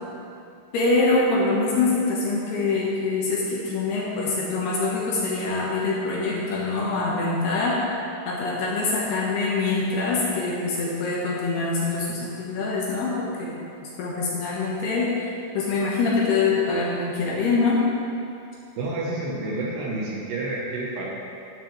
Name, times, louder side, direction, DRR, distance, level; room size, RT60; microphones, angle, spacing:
voice 1, 0.7-7.7 8.3-13.5 14.0-17.8, left 3 dB, 70° left, -4 dB, 2.8 m, -24 dB
voice 2, 18.8-21.0, right 2 dB, 70° right, -4 dB, 2.9 m, -29 dB
12.5 x 9.2 x 3.3 m, 2.6 s
omnidirectional pair, 5.5 m